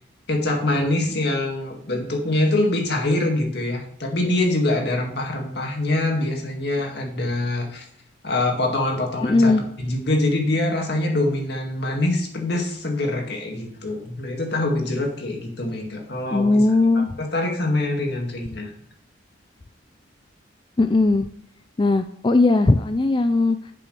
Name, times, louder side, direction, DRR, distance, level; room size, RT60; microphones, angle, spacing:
voice 1, 0.3-7.9 8.2-16.6 16.9-18.7, left 2 dB, 55° left, 1 dB, 2.1 m, -24 dB
voice 2, 9.3-9.6 16.3-17.1 20.8-21.3 21.8-23.7, left 2 dB, 25° left, 9 dB, 0.3 m, -18 dB
10.5 x 7.7 x 3.3 m, 0.70 s
head